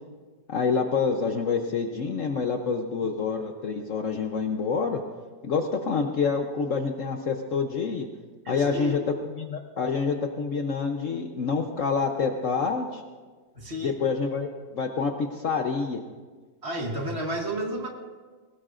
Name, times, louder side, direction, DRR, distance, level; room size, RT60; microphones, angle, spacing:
voice 1, 0.5-5.0 5.4-8.1 8.5-9.0 9.4-13.0 13.8-14.5 14.7-16.0, left 5 dB, 55° left, 5 dB, 1.0 m, -27 dB
voice 2, 8.5-9.0 13.6-14.0 16.6-17.9, right 1 dB, 40° right, 1 dB, 1.8 m, -31 dB
20.0 x 17.5 x 2.5 m, 1.4 s
omnidirectional pair, 1.9 m